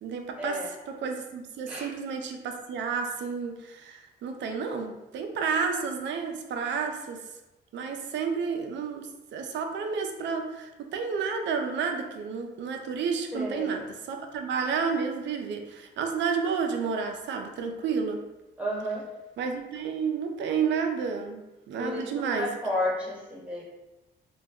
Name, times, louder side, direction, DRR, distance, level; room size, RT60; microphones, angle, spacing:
voice 1, 0.0-7.2 7.7-18.2 19.4-21.4 21.7-22.6, right 5 dB, 65° right, 4 dB, 0.4 m, -31 dB
voice 2, 13.3-13.7 18.6-19.1 21.8-23.6, left 1 dB, 5° right, -6 dB, 1.0 m, -32 dB
2.3 x 2.0 x 3.5 m, 1.0 s
cardioid pair, 90°, 20 cm